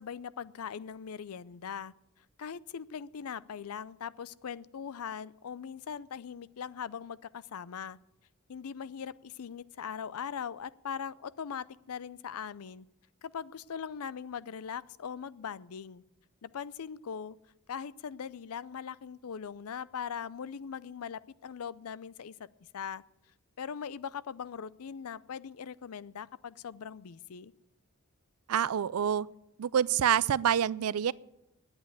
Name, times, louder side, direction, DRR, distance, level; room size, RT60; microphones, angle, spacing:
voice 1, 0.0-1.9 2.4-8.0 8.5-12.9 13.2-16.0 16.4-17.4 17.7-22.3 22.7-23.0 23.6-27.5, left 7 dB, 80° left, 18 dB, 0.5 m, -40 dB
voice 2, 28.5-29.3 29.6-31.1, right 9 dB, 80° right, 20 dB, 0.4 m, -27 dB
10.5 x 8.8 x 9.3 m, 0.87 s
head